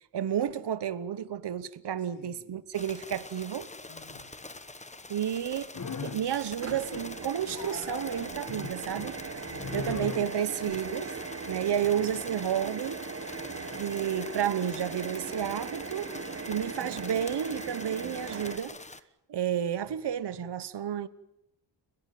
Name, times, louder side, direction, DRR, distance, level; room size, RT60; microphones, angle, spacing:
voice 1, 0.1-3.7 5.1-5.7 6.0-9.2 9.7-11.1 11.5-13.0 13.8-16.1 16.5-18.7 19.3-21.1, right 9 dB, 55° right, 1.0 m, -31 dB
voice 2, 2.0-2.6 3.9-4.4 9.3-10.1 11.7-12.1, left 3 dB, 65° left, 6.6 m, -55 dB
sound 1, 2.7-19.0, left 2 dB, 15° left, 1.1 m, -45 dB
sound 2, 5.7-6.3 6.7-7.2 7.5-10.8, left 4 dB, 35° left, 1.8 m, -39 dB
sound 3, 6.6-18.6, right 5 dB, 30° right, 1.5 m, -39 dB
30.0 x 15.5 x 9.3 m
wide cardioid pair, 170°, 50 cm